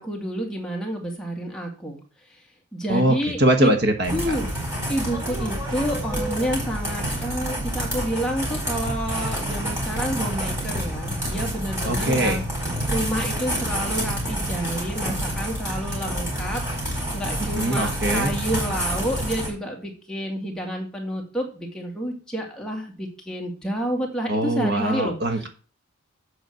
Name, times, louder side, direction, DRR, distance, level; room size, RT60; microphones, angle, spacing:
voice 1, 0.0-2.0 2.7-3.8 4.1-4.5 4.9-12.4 12.9-16.6 16.9-25.2, equal, 5° left, -1 dB, 2.1 m, -29 dB
voice 2, 2.9-4.3 11.8-12.4 17.4-18.3 24.3-25.5, right 1 dB, 50° right, 5 dB, 1.2 m, -22 dB
sound 1, 4.0-19.5, equal, 15° right, 4.6 m, -28 dB
7.9 x 6.2 x 6.4 m, 0.38 s
head